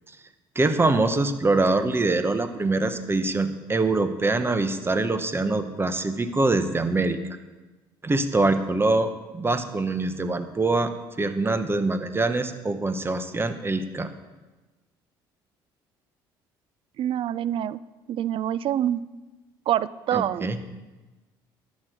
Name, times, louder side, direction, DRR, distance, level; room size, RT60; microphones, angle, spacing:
voice 1, 0.5-7.2 8.0-10.9 11.2-14.1 20.1-20.6, right 2 dB, 20° right, 9 dB, 1.1 m, -24 dB
voice 2, 17.0-17.8 18.1-19.0 19.7-20.6, right 11 dB, 55° right, 18 dB, 0.4 m, -26 dB
12.0 x 6.3 x 6.3 m, 1.2 s
supercardioid pair, 70°, 11 cm